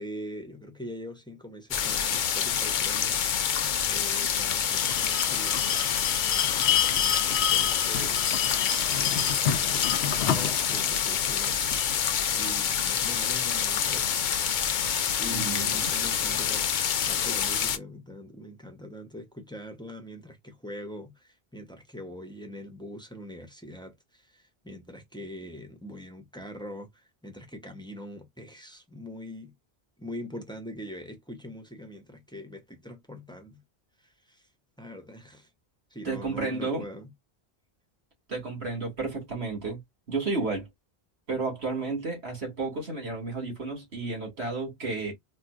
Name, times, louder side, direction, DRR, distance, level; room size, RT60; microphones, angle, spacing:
voice 1, 0.0-3.2 3.9-5.9 6.2-8.2 8.8-9.4 9.7-11.7 12.3-14.2 15.2-16.7 17.0-29.5 30.0-33.6 34.0-34.4 34.8-35.5 35.9-37.1, equal, 5° left, 0.7 m, -43 dB
sound 1, 1.7-17.8, left 8 dB, 55° left, 0.6 m, -27 dB
Bell, 4.7-11.9, left 9 dB, 80° left, 0.9 m, -29 dB
voice 2, 15.3-15.9 36.0-36.8 38.3-39.8 40.1-40.7 41.3-45.1, right 3 dB, 85° right, 2.5 m, -32 dB
4.3 x 2.5 x 2.4 m
omnidirectional pair, 1.1 m